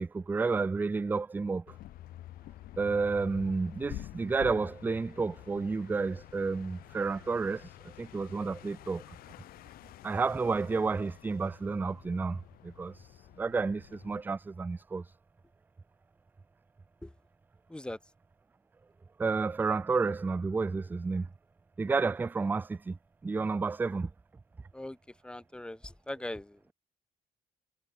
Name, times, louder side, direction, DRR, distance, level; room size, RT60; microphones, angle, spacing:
voice 1, 0.0-1.6 2.8-9.0 10.0-13.1 13.4-15.0 19.2-21.3 21.8-23.0 23.2-24.1, right 4 dB, 15° right, 0.3 m, -31 dB
sound 1, 1.7-14.2, left 15 dB, 90° left, 1.7 m, -49 dB
voice 2, 25.2-26.7, left 1 dB, 5° left, 1.2 m, -40 dB
cardioid pair, 155°, 15 cm